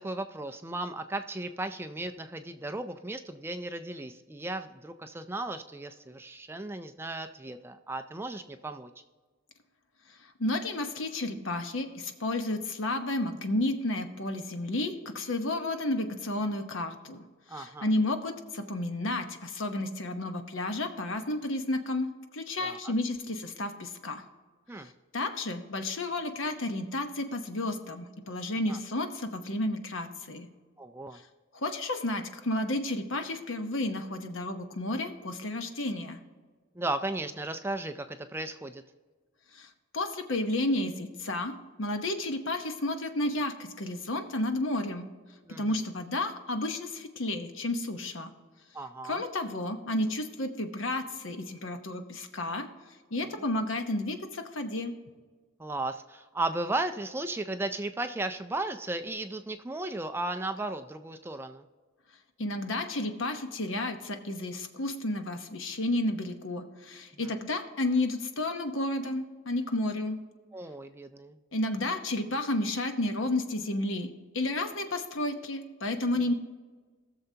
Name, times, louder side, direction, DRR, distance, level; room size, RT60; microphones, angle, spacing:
voice 1, 0.0-8.9 17.5-17.9 22.6-22.9 24.7-24.9 28.7-28.8 30.8-31.2 36.8-38.8 45.5-45.6 48.7-49.2 55.6-61.6 67.2-67.3 70.5-71.4, right 2 dB, 10° right, 8 dB, 0.4 m, -35 dB
voice 2, 10.2-24.2 24.8-30.5 31.5-36.2 39.5-39.7 39.9-45.1 45.5-48.3 49.0-52.7 53.1-55.0 62.4-70.2 71.5-76.3, left 1 dB, 65° left, 6 dB, 1.0 m, -32 dB
19.5 x 6.8 x 2.8 m, 1.4 s
head